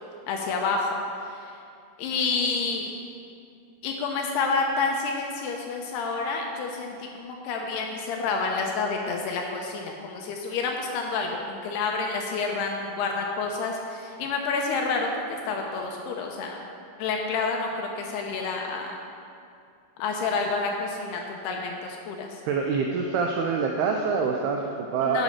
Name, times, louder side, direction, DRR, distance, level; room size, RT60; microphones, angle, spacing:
voice 1, 0.3-0.9 1.3-1.5 2.0-2.9 3.8-16.6 17.0-18.9 20.0-22.3 25.0-25.2, left 4 dB, 75° left, 1 dB, 2.5 m, -29 dB
voice 2, 22.5-25.2, right 5 dB, 90° right, 2 dB, 2.2 m, -26 dB
10.0 x 6.3 x 5.6 m, 2.4 s
omnidirectional pair, 5.1 m